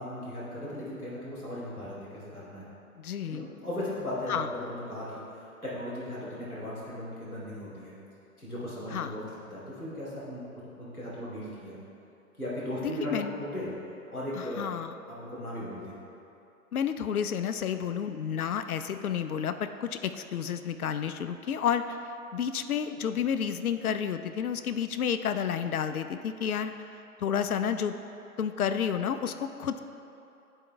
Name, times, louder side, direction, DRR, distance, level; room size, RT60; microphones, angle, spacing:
voice 1, 0.0-2.7 3.3-7.9 8.4-11.8 12.4-13.7 14.1-14.7 15.1-15.9, left 1 dB, ahead, -27 dB, 0.4 m, -37 dB
voice 2, 3.0-3.5 4.3-4.5 8.9-9.1 12.8-13.3 14.3-14.9 16.7-22.0 22.3-26.7 27.2-27.9 28.4-29.8, left 8 dB, 75° left, 9 dB, 0.5 m, -30 dB
10.0 x 4.4 x 3.3 m, 2.8 s
figure-of-eight pair, 125°, 44 cm